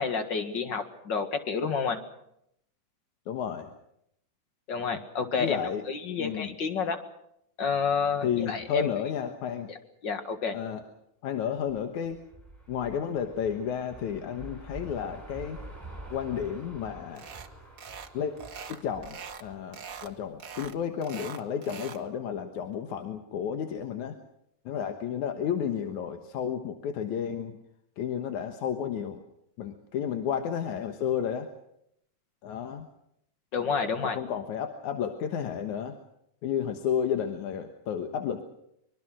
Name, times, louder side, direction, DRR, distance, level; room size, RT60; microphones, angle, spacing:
voice 1, 0.0-2.0 4.7-5.6 5.9-7.0 7.6-8.9 9.7-9.8 10.0-10.6 33.5-34.2, left 5 dB, 40° left, 7 dB, 2.1 m, -29 dB
voice 2, 3.3-3.7 5.4-5.8 6.2-6.6 8.2-9.7 10.5-10.8 11.2-12.2 12.7-15.6 16.1-17.3 18.1-18.3 18.7-24.2 24.7-27.6 28.0-29.2 29.6-31.5 32.4-32.9 34.1-36.0 36.4-38.5, left 8 dB, 70° left, 5 dB, 2.7 m, -32 dB
sound 1, 11.6-20.8, right 2 dB, 5° right, 6.8 m, -47 dB
sound 2, 17.2-17.5 17.8-18.1 18.4-19.4 19.7-20.1 20.4-22.0, right 6 dB, 55° right, 0.9 m, -42 dB
24.5 x 23.5 x 6.2 m, 0.76 s
omnidirectional pair, 3.6 m